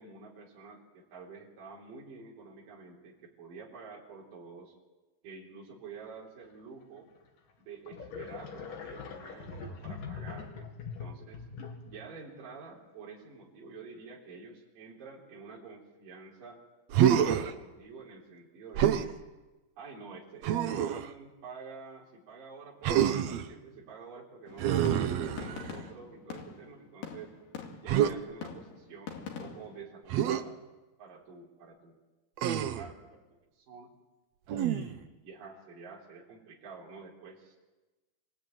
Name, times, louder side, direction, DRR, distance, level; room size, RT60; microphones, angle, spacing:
voice 1, 0.0-4.7 5.2-7.1 7.6-10.7 11.0-11.5 11.8-16.6 17.0-19.2 19.8-27.3 27.8-30.6 31.0-32.0 32.8-33.2 33.6-33.9 34.5-37.6, right 5 dB, 60° right, -5 dB, 5.2 m, -48 dB
sound 1, 7.2-7.3 7.9-12.1, left 5 dB, 60° left, 3.7 m, -42 dB
Human voice, 16.9-17.5 18.7-19.1 20.4-21.1 22.8-23.5 24.6-25.8 27.9-28.1 30.1-30.4 32.4-32.9 34.5-35.0, right 10 dB, 80° right, 1.5 m, -27 dB
sound 2, 24.5-28.0 28.4-29.8, left 6 dB, 85° left, 4.5 m, -44 dB
27.5 x 18.0 x 9.4 m, 1.2 s
omnidirectional pair, 4.6 m